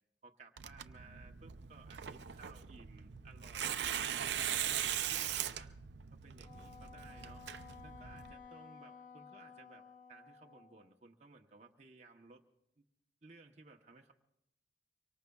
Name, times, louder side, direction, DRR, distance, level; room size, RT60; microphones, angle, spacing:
voice 1, 0.2-5.7 6.1-7.5 7.8-12.4 12.8-12.9 13.2-14.1, right 3 dB, 40° right, 1 dB, 0.9 m, -59 dB
Tearing, 0.6-8.3, right 10 dB, 85° right, 0.6 m, -40 dB
Wind instrument woodwind instrument, 6.4-10.9, left 6 dB, 45° left, 0.7 m, -55 dB
24.5 x 24.0 x 2.3 m, 0.82 s
head